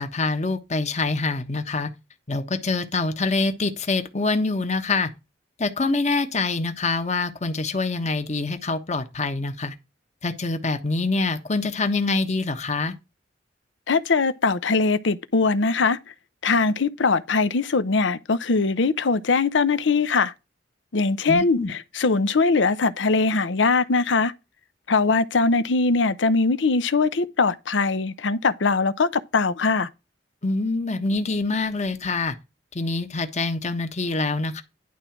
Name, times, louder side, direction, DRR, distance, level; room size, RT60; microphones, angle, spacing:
voice 1, 0.0-1.9 2.3-5.1 5.6-9.7 10.2-12.9 21.3-21.7 30.4-32.3 32.7-34.6, left 3 dB, 40° left, 1.3 m, -25 dB
voice 2, 13.9-16.0 16.4-20.3 20.9-24.3 24.9-29.9, left 4 dB, 80° left, 0.7 m, -21 dB
11.0 x 3.8 x 5.9 m
head